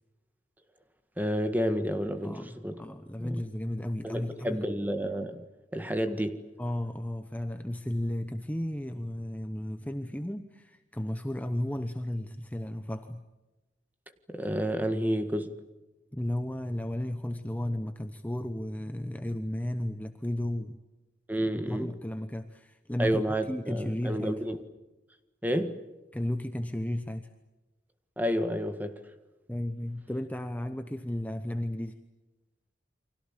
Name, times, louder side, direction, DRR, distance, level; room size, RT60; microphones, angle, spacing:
voice 1, 1.2-2.8 3.2-3.4 4.0-5.4 5.7-6.4 14.3-15.5 21.3-21.9 23.0-24.6 25.4-25.8 28.2-29.0, equal, 10° right, 1.7 m, -30 dB
voice 2, 2.2-4.6 6.6-13.2 16.1-20.8 21.4-24.3 26.1-27.3 29.5-32.0, left 1 dB, 10° left, 0.9 m, -34 dB
29.5 x 24.5 x 7.4 m
head